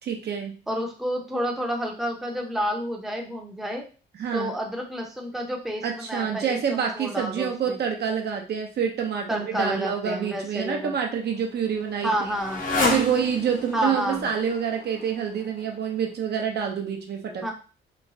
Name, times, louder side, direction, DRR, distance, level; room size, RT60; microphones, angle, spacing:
voice 1, 0.0-0.6 4.2-4.6 5.8-12.1 12.9-17.5, right 7 dB, 55° right, 2 dB, 0.6 m, -27 dB
voice 2, 0.7-3.9 4.3-7.8 9.3-10.9 12.0-12.9 13.7-14.3 17.4-17.5, equal, ahead, 0 dB, 0.6 m, -30 dB
Motorcycle, 10.7-16.1, left 2 dB, 40° left, 0.8 m, -32 dB
3.0 x 2.2 x 2.6 m, 0.36 s
cardioid pair, 90°, 20 cm